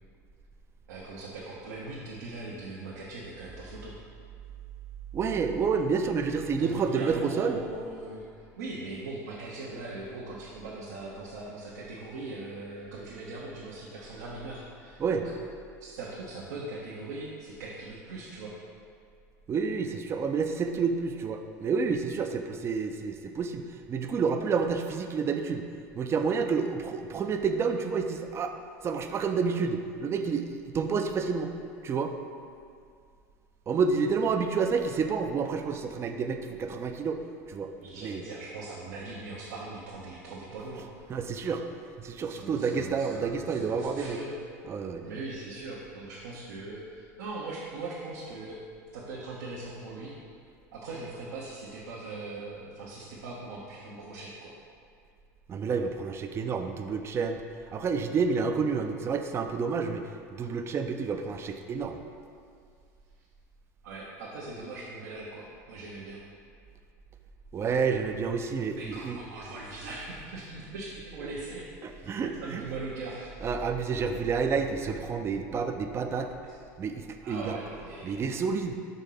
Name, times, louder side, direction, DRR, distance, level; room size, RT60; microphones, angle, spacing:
voice 1, 0.9-3.9 6.5-15.2 15.8-18.5 37.8-40.9 42.3-44.3 45.0-48.6 48.9-50.1 50.7-54.5 63.8-66.2 68.8-71.6 72.0-73.5 76.5-76.6 77.2-78.3, right 2 dB, 85° right, -6 dB, 0.9 m, -40 dB
voice 2, 5.1-7.6 15.0-15.2 19.5-25.6 25.9-28.5 28.8-31.5 31.8-32.1 33.7-37.2 37.5-37.7 38.0-38.2 41.1-41.6 42.0-44.2 44.7-45.1 55.5-57.4 57.7-60.0 60.3-62.0 67.5-69.2 71.8-72.6 73.4-76.3 76.8-77.6 78.0-78.7, right 5 dB, 30° right, 6 dB, 0.5 m, -29 dB
5.3 x 3.7 x 5.7 m, 2.3 s
supercardioid pair, 100°, 9 cm